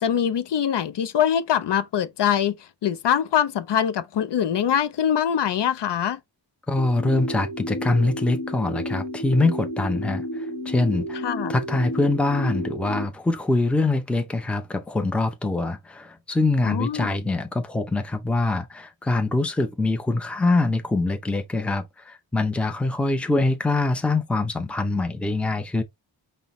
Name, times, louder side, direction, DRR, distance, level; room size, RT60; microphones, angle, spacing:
voice 1, 0.0-6.2 11.2-11.5 16.6-17.2, left 9 dB, 65° left, 0.5 m, -23 dB
voice 2, 6.7-11.2 11.5-25.8, left 2 dB, 5° left, 0.5 m, -24 dB
sound 1, 6.8-13.1, equal, 40° left, 1.0 m, -31 dB
5.4 x 2.2 x 3.0 m
wide cardioid pair, 150°, 46 cm